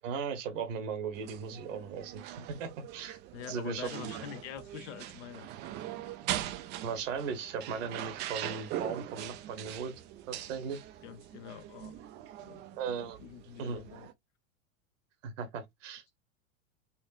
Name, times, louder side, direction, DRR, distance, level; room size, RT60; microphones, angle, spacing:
voice 1, 0.0-2.2 2.6-3.2 3.5-4.2 6.8-9.9 10.3-10.8 12.8-13.2 13.6-13.8 15.2-16.0, right 6 dB, 65° right, 1.3 m, -37 dB
sound 1, 1.1-14.1, right 12 dB, 25° right, 0.4 m, -42 dB
voice 2, 3.3-5.5 11.0-12.0 12.4-12.6 13.2-14.1, left 10 dB, 60° left, 0.8 m, -45 dB
4.2 x 2.5 x 2.5 m
hypercardioid pair, 95°, 41 cm